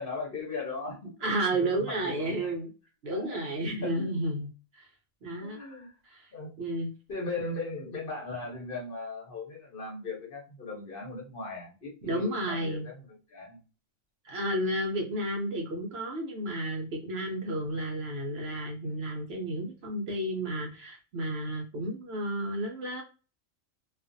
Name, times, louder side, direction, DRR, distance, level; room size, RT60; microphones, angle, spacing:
voice 1, 0.0-1.3 1.7-2.5 3.1-3.3 3.8-4.2 5.4-5.9 6.3-6.5 7.1-13.0 13.3-13.6, left 3 dB, 50° left, -2 dB, 0.9 m, -38 dB
voice 2, 1.2-2.7 3.0-4.9 5.2-5.6 6.0-6.3 6.6-6.9 12.0-12.9 14.2-23.0, right 1 dB, 60° right, 1 dB, 0.8 m, -32 dB
2.4 x 2.4 x 2.5 m, 0.32 s
omnidirectional pair, 1.4 m